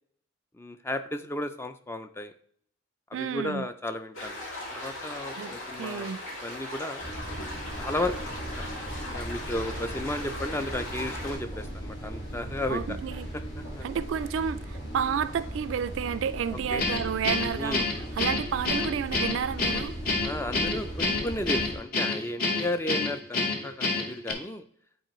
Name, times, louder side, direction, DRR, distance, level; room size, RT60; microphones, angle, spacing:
voice 1, 0.6-2.3 3.1-4.4 4.7-6.2 6.4-7.0 7.8-8.5 9.1-13.0 13.8-13.9 16.7-16.8 17.6-17.9 20.2-24.6, left 1 dB, 10° left, 0.3 m, -34 dB
voice 2, 3.1-3.7 5.4-6.2 12.7-13.3 13.8-19.9, right 7 dB, 70° right, 0.3 m, -31 dB
sound 1, 4.1-11.4, left 1 dB, 85° left, 2.7 m, -38 dB
sound 2, 7.0-21.8, right 1 dB, 60° left, 2.6 m, -38 dB
Guitar, 16.8-24.3, left 3 dB, 45° left, 0.9 m, -28 dB
9.0 x 4.2 x 3.0 m
head